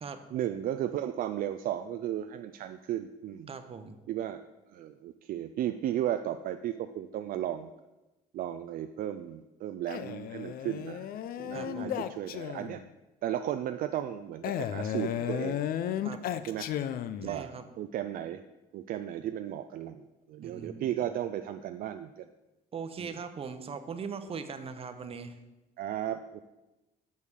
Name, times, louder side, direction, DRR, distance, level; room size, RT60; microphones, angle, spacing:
voice 1, 0.3-3.5 4.1-4.4 4.7-7.7 8.3-11.1 11.4-12.8 13.2-15.6 16.5-16.7 17.2-18.4 18.7-22.3 23.0-23.2 25.8-26.4, right 11 dB, 60° right, 9 dB, 0.4 m, -35 dB
voice 2, 3.5-4.0 11.5-12.0 16.0-16.2 17.2-17.7 20.4-21.1 22.7-25.4, right 5 dB, 35° right, 8 dB, 0.8 m, -40 dB
Male speech man speaking, 9.9-12.9 14.4-17.4, left 10 dB, 60° left, 0.5 m, -34 dB
6.6 x 5.5 x 6.3 m, 1.0 s
cardioid pair, 110°, 17 cm